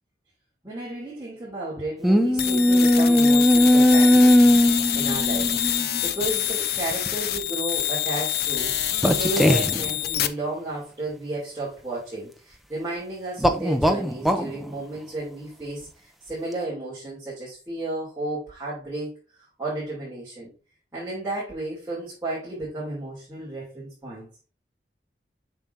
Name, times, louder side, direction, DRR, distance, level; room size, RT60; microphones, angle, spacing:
voice 1, 0.6-20.5 20.9-24.3, right 2 dB, 15° right, -9 dB, 2.8 m, -33 dB
sound 1, 2.0-6.0 6.9-7.1 9.0-9.8 13.4-14.5, equal, ahead, 0.5 m, -18 dB
sound 2, 2.4-10.3, left 12 dB, 60° left, 0.4 m, -26 dB
7.1 x 6.0 x 2.7 m, 0.33 s
head